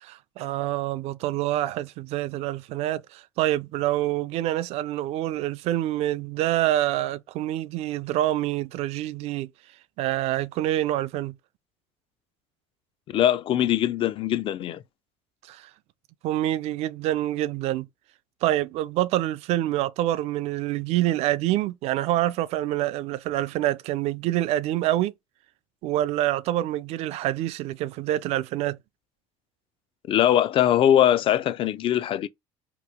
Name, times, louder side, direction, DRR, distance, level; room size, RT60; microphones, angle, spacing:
voice 1, 0.0-9.5 10.0-11.4 15.4-15.7 16.2-17.9 18.4-25.1 25.8-28.8, right 14 dB, 70° right, 0.4 m, -26 dB
voice 2, 13.1-14.8 30.1-32.3, left 11 dB, 50° left, 0.4 m, -21 dB
3.0 x 2.3 x 3.5 m
cardioid pair, 100°, 11 cm